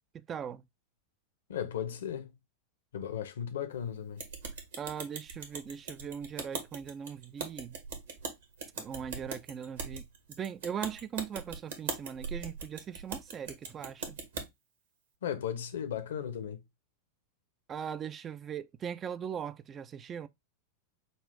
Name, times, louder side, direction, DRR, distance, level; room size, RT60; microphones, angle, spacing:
voice 1, 0.1-0.6 4.8-7.8 8.8-10.0 10.4-14.2 17.7-20.3, right 8 dB, 25° right, 0.3 m, -39 dB
voice 2, 1.5-2.3 2.9-4.2 15.2-16.6, left 9 dB, 60° left, 0.8 m, -36 dB
sound 1, 4.2-14.5, right 5 dB, 60° right, 1.2 m, -41 dB
5.3 x 2.5 x 3.5 m
figure-of-eight pair, 90°, 0 cm